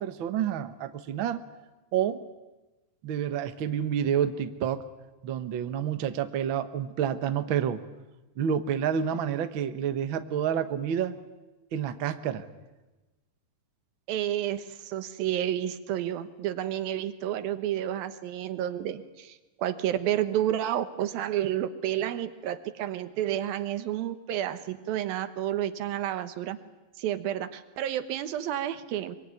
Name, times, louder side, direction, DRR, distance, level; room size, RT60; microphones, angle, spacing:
voice 1, 0.0-1.4 1.9-2.3 3.0-4.8 5.2-7.8 8.4-11.2 11.7-12.4, right 8 dB, 65° right, 9 dB, 1.2 m, -29 dB
voice 2, 14.1-26.6 27.0-29.2, right 11 dB, 90° right, 11 dB, 3.0 m, -30 dB
24.0 x 24.0 x 9.7 m, 1.1 s
omnidirectional pair, 4.1 m